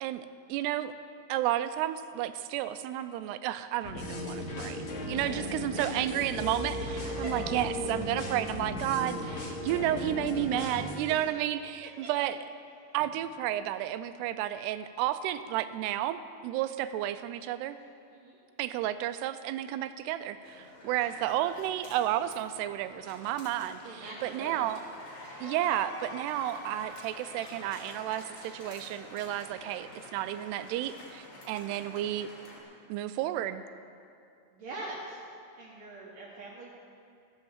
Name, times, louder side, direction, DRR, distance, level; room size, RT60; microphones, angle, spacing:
voice 1, 0.0-0.9 1.3-12.4 12.9-17.8 18.6-24.8 25.4-32.3 32.9-33.6, right 12 dB, 85° right, 12 dB, 2.7 m, -32 dB
sound 1, 3.8-11.0, left 1 dB, 55° left, 2.4 m, -36 dB
sound 2, 20.4-32.6, left 1 dB, 75° left, 5.1 m, -47 dB
voice 2, 23.7-24.6 34.5-35.2 35.6-36.7, right 2 dB, 60° right, -4 dB, 2.7 m, -43 dB
14.5 x 8.8 x 7.3 m, 2.5 s
omnidirectional pair, 4.7 m